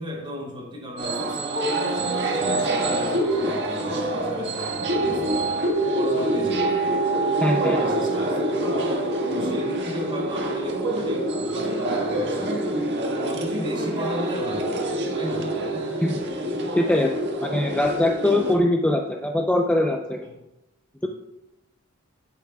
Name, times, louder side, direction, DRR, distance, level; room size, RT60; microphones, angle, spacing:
voice 1, 0.0-6.9 7.8-9.0 9.3-12.5 13.2-14.8 15.1-15.9 21.0-21.1, equal, 25° right, -2 dB, 3.2 m, -36 dB
sound 1, 1.0-18.5, right 1 dB, 55° right, 1.7 m, -25 dB
voice 2, 7.4-7.8 16.8-17.1 17.4-20.2, left 1 dB, 5° left, 1 dB, 0.5 m, -22 dB
15.5 x 8.3 x 2.3 m, 0.92 s
head